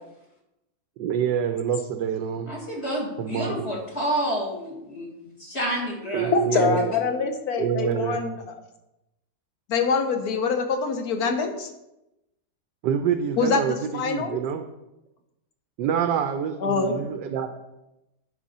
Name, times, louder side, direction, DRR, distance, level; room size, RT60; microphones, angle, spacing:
voice 1, 1.0-2.5 3.2-3.7 6.1-6.9 7.6-8.2 12.8-14.6 15.8-17.5, right 8 dB, 70° right, 7 dB, 1.2 m, -26 dB
voice 2, 2.5-5.1 5.4-6.6, equal, 35° left, -3 dB, 1.8 m, -29 dB
voice 3, 6.3-8.5 9.7-11.7 13.4-14.4 16.6-17.1, left 5 dB, 60° left, 6 dB, 1.2 m, -25 dB
10.5 x 5.2 x 4.2 m, 0.92 s
omnidirectional pair, 2.2 m